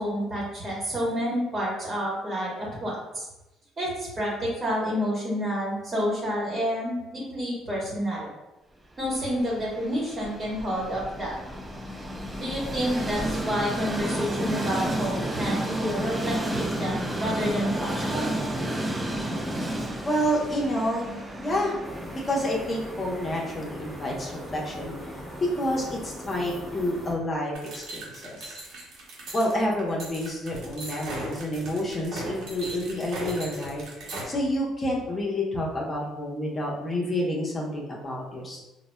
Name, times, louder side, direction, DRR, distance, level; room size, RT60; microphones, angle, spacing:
voice 1, 0.0-3.3 3.8-8.3 9.0-11.4 12.4-18.3, equal, 35° right, -6 dB, 1.2 m, -29 dB
Train, 9.0-27.1, right 1 dB, 15° right, 0.5 m, -32 dB
voice 2, 20.0-21.8 22.1-24.9 25.6-28.6 29.3-33.8 34.3-38.6, left 1 dB, 30° left, -2 dB, 0.9 m, -29 dB
sound 1, 21.8-27.1, equal, 5° left, 1.1 m, -41 dB
sound 2, 27.5-34.2, right 1 dB, 70° right, 0.9 m, -38 dB
3.8 x 2.2 x 2.2 m, 0.99 s
supercardioid pair, 70°, 0 cm